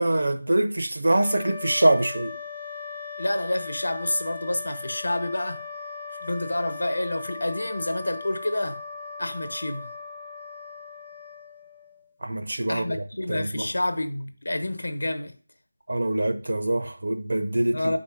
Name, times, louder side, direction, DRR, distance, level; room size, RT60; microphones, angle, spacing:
voice 1, 0.0-2.4 12.2-12.9 13.3-13.7 15.9-18.0, right 1 dB, 50° right, 0.6 m, -24 dB
sound 1, 1.1-12.1, left 4 dB, 5° left, 0.4 m, -39 dB
voice 2, 3.2-5.6 6.2-8.8 9.2-9.9 12.7-15.3 17.7-18.0, left 1 dB, 85° left, 0.9 m, -28 dB
5.5 x 4.2 x 4.7 m
figure-of-eight pair, 180°, 0 cm